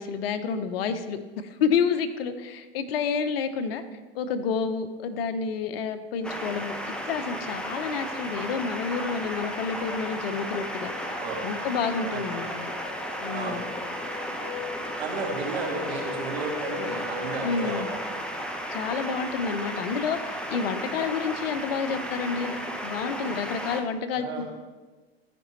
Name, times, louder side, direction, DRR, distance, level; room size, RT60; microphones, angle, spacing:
voice 1, 0.0-3.8 4.1-6.7 7.0-12.5 13.2-13.6 17.4-18.0 18.7-24.4, left 6 dB, 70° left, 10 dB, 0.8 m, -29 dB
sound 1, 6.2-23.8, equal, 5° left, 0.7 m, -34 dB
sound 2, 10.9-18.0, left 7 dB, 40° left, 1.2 m, -41 dB
voice 2, 11.2-11.5 12.1-12.5 13.3-13.7 15.0-18.0 24.1-24.4, right 3 dB, 80° right, -1 dB, 2.3 m, -33 dB
13.0 x 5.1 x 3.2 m, 1.3 s
hypercardioid pair, 105°, 31 cm